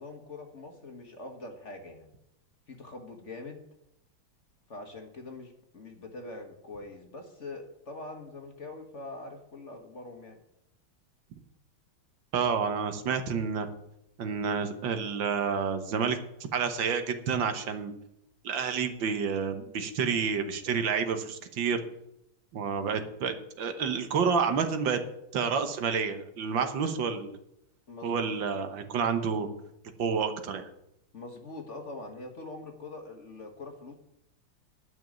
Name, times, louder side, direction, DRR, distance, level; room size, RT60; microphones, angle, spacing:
voice 1, 0.0-2.1 2.7-3.7 4.7-10.4 27.9-28.3 31.1-33.9, left 2 dB, 40° left, 4 dB, 1.5 m, -43 dB
voice 2, 12.3-13.7 14.2-16.2 16.5-17.9 18.4-21.8 22.5-25.0 25.3-27.4 28.0-29.5 30.0-30.7, right 6 dB, 70° right, 8 dB, 1.8 m, -29 dB
11.0 x 6.3 x 9.0 m, 0.81 s
omnidirectional pair, 2.2 m